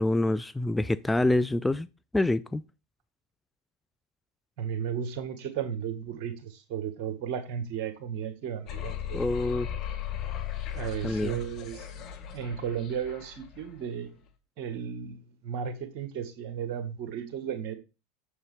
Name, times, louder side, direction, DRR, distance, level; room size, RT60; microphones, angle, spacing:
voice 1, 0.0-1.9 2.1-2.6 9.1-9.7 11.0-11.4, left 2 dB, 10° left, 0.4 m, -26 dB
voice 2, 4.6-9.2 10.7-11.9 12.3-14.1 14.6-17.7, right 8 dB, 55° right, 1.5 m, -34 dB
sound 1, 8.7-13.8, left 10 dB, 45° left, 1.5 m, -37 dB
6.9 x 6.7 x 3.3 m
hypercardioid pair, 85°, 0 cm